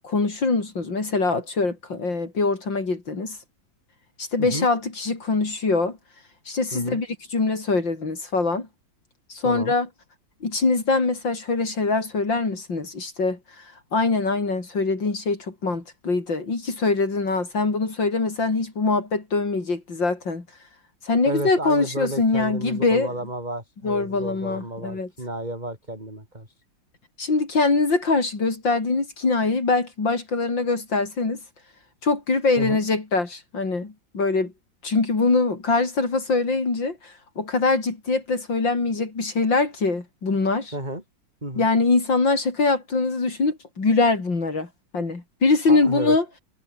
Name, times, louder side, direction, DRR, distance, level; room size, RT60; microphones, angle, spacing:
voice 1, 0.0-3.4 4.2-6.0 6.5-8.7 9.3-9.9 10.4-13.6 13.9-20.4 21.0-23.1 23.8-25.1 27.2-31.4 32.0-34.5 34.8-40.7 41.6-44.7 44.9-46.2, left 3 dB, 65° left, 4.9 m, -23 dB
voice 2, 6.7-7.0 9.4-9.7 21.2-26.5 32.6-32.8 40.7-41.0 41.4-41.7 45.7-46.2, right 1 dB, 20° right, 6.5 m, -32 dB
omnidirectional pair, 2.2 m